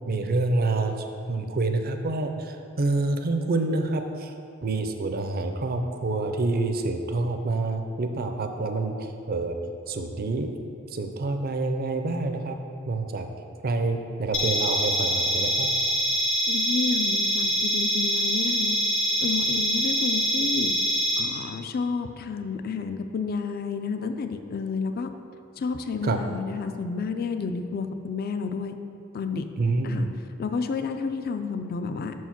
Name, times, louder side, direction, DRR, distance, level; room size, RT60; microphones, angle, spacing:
voice 1, 0.1-1.0 1.3-4.3 4.6-9.6 9.9-10.5 10.9-12.6 12.9-13.3 13.6-15.7 26.0-26.2 29.6-30.2, right 3 dB, 45° right, 6 dB, 0.5 m, -27 dB
sound 1, 14.3-21.2, equal, 65° left, 1.4 m, -24 dB
voice 2, 16.5-18.8 19.2-20.7 21.2-25.1 25.6-28.8 29.1-29.4 29.8-30.1 30.4-32.1, left 5 dB, 45° left, 7 dB, 0.4 m, -30 dB
5.9 x 4.7 x 5.8 m, 2.6 s
head